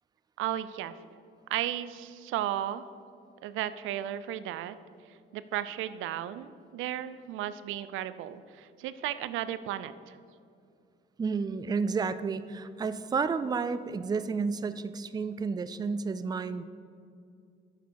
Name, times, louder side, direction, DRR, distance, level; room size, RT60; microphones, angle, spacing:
voice 1, 0.4-0.9 1.5-2.8 3.4-4.8 5.3-10.2, right 12 dB, 90° right, 14 dB, 0.4 m, -34 dB
voice 2, 11.2-16.6, right 5 dB, 20° right, 13 dB, 0.3 m, -31 dB
9.0 x 7.0 x 4.7 m, 2.4 s
cardioid pair, 90°, 20 cm